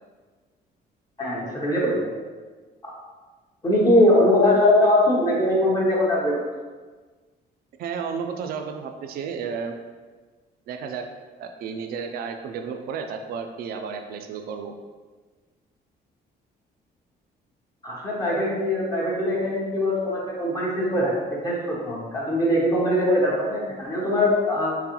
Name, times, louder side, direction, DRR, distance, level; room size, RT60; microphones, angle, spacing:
voice 1, 1.2-2.1 2.8-2.9 3.6-6.4 17.8-21.1 21.4-24.8, left 1 dB, 20° left, -5 dB, 0.8 m, -21 dB
voice 2, 7.8-9.8 10.7-11.1 11.4-14.8, right 6 dB, 60° right, 5 dB, 0.4 m, -32 dB
4.6 x 3.8 x 2.9 m, 1.4 s
cardioid pair, 180°, 17 cm